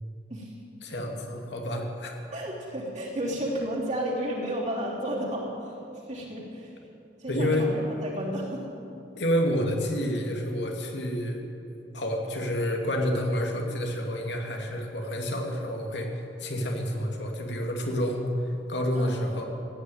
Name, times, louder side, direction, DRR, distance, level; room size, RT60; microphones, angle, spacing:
voice 1, 0.8-2.1 7.3-7.7 9.2-11.4 11.9-19.5, equal, 85° left, 2 dB, 2.4 m, -29 dB
voice 2, 2.3-6.7 7.2-8.6 18.9-19.2, right 1 dB, 45° right, -6 dB, 3.3 m, -32 dB
16.0 x 9.4 x 9.3 m, 2.8 s
head